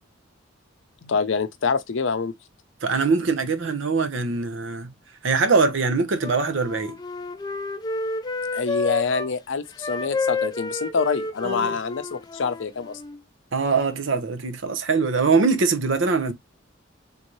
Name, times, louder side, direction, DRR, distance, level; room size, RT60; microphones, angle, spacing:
voice 1, 1.0-2.3 8.5-13.0, left 5 dB, 65° left, 0.5 m, -26 dB
voice 2, 2.8-4.9 5.2-7.0 11.4-11.7 13.5-16.3, right 4 dB, 70° right, 0.7 m, -22 dB
Wind instrument woodwind instrument, 6.2-9.3 9.7-13.2, left 3 dB, 20° left, 0.5 m, -30 dB
3.7 x 2.7 x 2.9 m
head